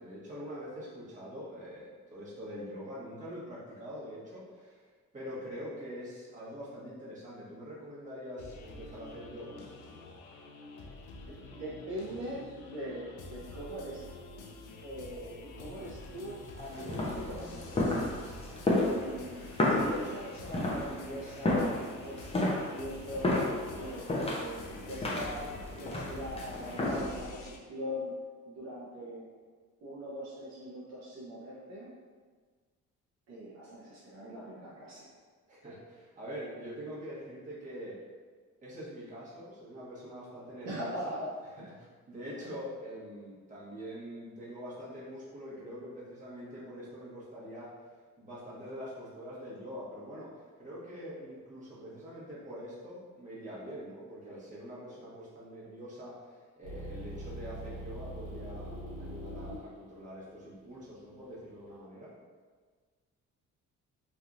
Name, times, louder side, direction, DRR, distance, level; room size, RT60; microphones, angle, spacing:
voice 1, 0.0-9.6 15.8-15.9 35.5-38.0 38.6-41.2 41.6-47.7 48.2-62.1, equal, 25° right, -9 dB, 1.3 m, -44 dB
sound 1, 8.4-27.6, left 2 dB, 85° left, 0.5 m, -48 dB
voice 2, 11.3-14.2 14.8-18.0 18.7-23.4 23.7-28.1 28.4-29.3 29.8-31.9 33.3-35.1 40.6-41.3 42.5-42.6, equal, 60° right, -7 dB, 0.8 m, -41 dB
sound 2, 16.6-27.2, left 1 dB, 20° left, 0.7 m, -32 dB
sound 3, 56.6-61.8, equal, 80° right, 1.2 m, -43 dB
3.3 x 2.7 x 2.5 m, 1.5 s
cardioid pair, 90°, 30 cm